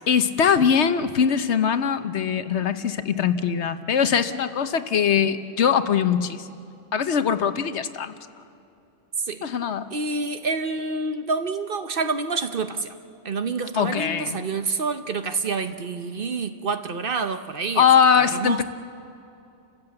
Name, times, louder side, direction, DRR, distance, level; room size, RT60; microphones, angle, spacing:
voice 1, 0.1-6.5 6.9-8.1 9.4-9.9 13.7-14.4 17.8-18.6, left 7 dB, 65° left, 11 dB, 1.1 m, -21 dB
voice 2, 9.9-12.9 13.2-17.8 18.2-18.6, right 4 dB, 50° right, 9 dB, 1.0 m, -28 dB
29.5 x 15.5 x 7.8 m, 2.7 s
omnidirectional pair, 1.3 m